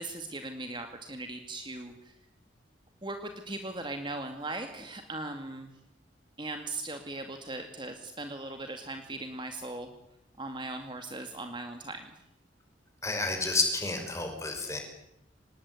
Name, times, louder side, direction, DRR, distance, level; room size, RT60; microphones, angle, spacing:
voice 1, 0.0-2.1 3.0-5.7 6.4-9.9 10.4-12.1, right 2 dB, 25° right, 6 dB, 2.1 m, -39 dB
voice 2, 13.0-14.8, left 3 dB, 15° left, 4 dB, 5.9 m, -30 dB
25.5 x 20.5 x 9.6 m, 0.80 s
head